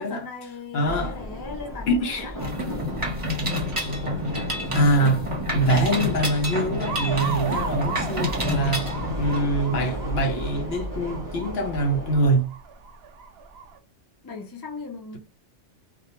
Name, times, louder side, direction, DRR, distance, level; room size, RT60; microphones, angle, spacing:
voice 1, 0.0-2.5 14.2-15.2, left 4 dB, 35° left, 0.3 m, -38 dB
voice 2, 0.7-1.2 1.9-2.3 4.7-8.9 9.2-12.5, right 1 dB, 65° left, 0.8 m, -24 dB
sound 1, 0.8-12.3, equal, 20° left, 0.7 m, -35 dB
Mechanisms, 2.4-9.4, left 1 dB, 30° right, 0.9 m, -28 dB
sound 2, 6.8-13.8, right 6 dB, 65° right, 0.7 m, -36 dB
2.3 x 2.2 x 2.8 m
omnidirectional pair, 1.2 m